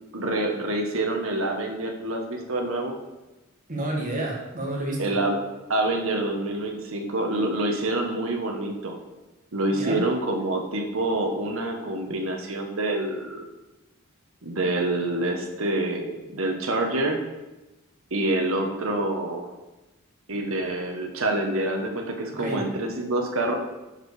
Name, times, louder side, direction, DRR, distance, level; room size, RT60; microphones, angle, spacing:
voice 1, 0.1-2.9 5.0-5.4 5.7-9.0 9.5-13.4 14.4-17.2 18.1-19.5 20.3-23.6, right 2 dB, 70° right, 3 dB, 1.2 m, -27 dB
voice 2, 3.7-5.2 9.7-10.0 22.3-22.6, right 1 dB, 40° right, 0 dB, 1.8 m, -30 dB
10.5 x 4.6 x 4.9 m, 1.0 s
head